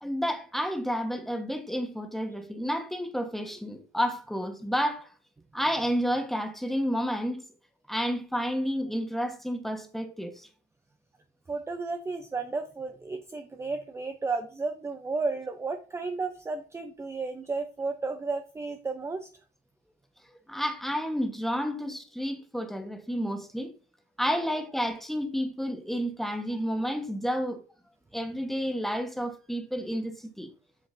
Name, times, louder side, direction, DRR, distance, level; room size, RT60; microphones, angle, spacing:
voice 1, 0.0-5.1 5.5-7.4 7.9-10.5 20.5-23.7 24.2-27.6 28.1-30.5, equal, ahead, 1.2 m, -30 dB
voice 2, 11.5-19.3, right 3 dB, 15° right, 0.6 m, -33 dB
7.9 x 6.2 x 2.6 m
cardioid pair, 110°, 17 cm